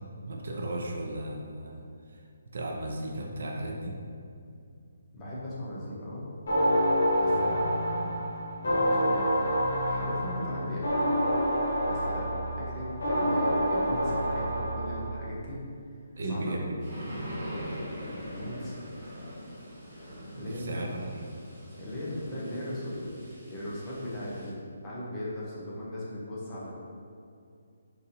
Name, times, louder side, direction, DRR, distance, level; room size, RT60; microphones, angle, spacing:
voice 1, 0.3-2.2 2.5-4.0 7.3-7.5 16.2-16.8 20.4-21.3, right 1 dB, 50° right, 0 dB, 0.4 m, -35 dB
voice 2, 5.1-6.2 7.1-8.3 8.6-9.5 9.8-10.9 11.8-15.6 16.2-16.8 17.8-18.9 20.3-21.0 21.8-23.2 23.5-24.6 24.8-26.7, left 1 dB, 10° left, -8 dB, 0.5 m, -38 dB
sound 1, 6.5-15.2, equal, 55° left, 0.9 m, -27 dB
sound 2, 16.8-24.5, equal, 15° right, 1.0 m, -42 dB
3.9 x 2.7 x 2.5 m, 2.4 s
hypercardioid pair, 175°, 0 cm